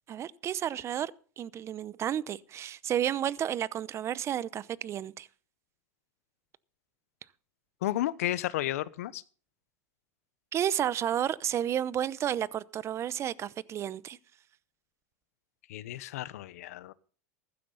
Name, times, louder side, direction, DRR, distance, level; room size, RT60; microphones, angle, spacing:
voice 1, 0.1-5.3 10.5-14.2, right 10 dB, 35° right, 0.8 m, -32 dB
voice 2, 7.8-9.2 15.7-16.9, left 14 dB, 80° left, 0.9 m, -32 dB
15.0 x 12.0 x 3.9 m
hypercardioid pair, 105°, 8 cm